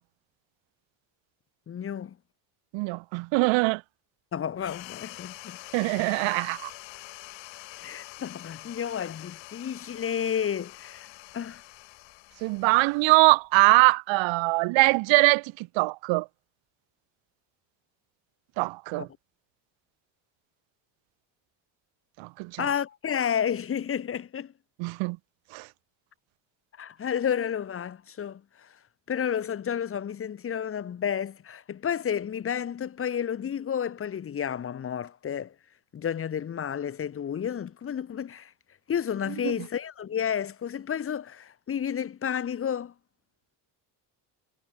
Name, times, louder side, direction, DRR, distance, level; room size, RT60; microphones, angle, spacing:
voice 1, 1.7-2.2 4.3-5.6 7.8-11.1 11.3-11.6 19.0-19.1 22.6-24.5 26.8-28.7 29.1-35.5 35.9-38.5 38.9-42.9, left 8 dB, 30° left, 1.9 m, -31 dB
voice 2, 2.7-3.8 5.7-6.7 12.4-16.3 18.6-19.1 22.2-22.7 24.8-25.2 25.5-25.7 39.4-39.5, right 25 dB, 90° right, 1.1 m, -23 dB
sound 1, 4.6-13.5, left 21 dB, 85° left, 7.9 m, -46 dB
cardioid pair, 160°, 44 cm